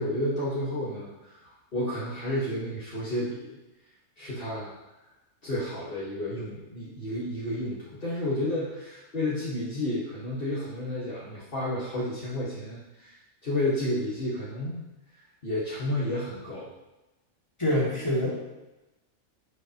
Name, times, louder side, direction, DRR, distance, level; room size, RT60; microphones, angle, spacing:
voice 1, 0.0-3.6 4.2-4.7 5.4-14.8 15.4-16.7, left 1 dB, 45° left, -8 dB, 1.8 m, -31 dB
voice 2, 17.6-18.3, left 1 dB, 20° left, -6 dB, 2.6 m, -25 dB
10.0 x 8.3 x 3.0 m, 1.0 s
omnidirectional pair, 1.4 m